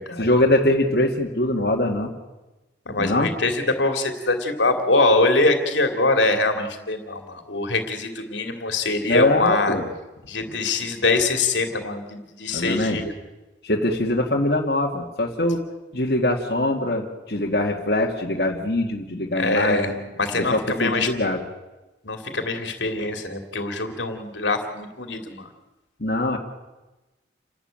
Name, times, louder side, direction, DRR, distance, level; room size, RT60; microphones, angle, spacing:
voice 1, 0.2-2.1 3.0-3.3 9.0-9.9 12.5-13.0 13.6-15.6 15.9-20.0 20.3-21.4 26.0-26.4, left 1 dB, 55° left, -1 dB, 2.3 m, -23 dB
voice 2, 2.9-9.7 10.3-13.1 19.3-21.1 22.0-25.5, left 2 dB, 85° left, 6 dB, 2.7 m, -23 dB
29.0 x 12.5 x 9.0 m, 1.1 s
head